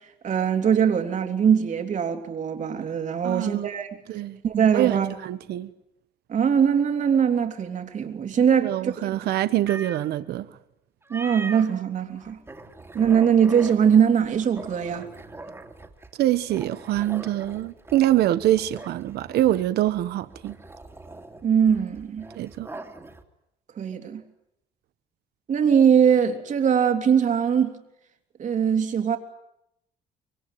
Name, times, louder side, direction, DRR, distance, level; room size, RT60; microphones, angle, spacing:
voice 1, 0.2-4.0 4.4-5.2 6.3-8.9 11.1-12.4 12.9-15.1 21.4-22.3 23.8-24.2 25.5-27.8 28.4-29.2, right 7 dB, 45° right, 3.4 m, -21 dB
voice 2, 3.2-3.7 4.1-4.4 4.7-5.7 8.6-10.5 16.2-20.5 22.3-22.7, right 13 dB, 70° right, 1.2 m, -24 dB
sound 1, 9.7-10.1 11.0-11.7 12.2-23.2, right 2 dB, 15° right, 3.0 m, -42 dB
25.5 x 23.0 x 9.4 m
cardioid pair, 110°, 17 cm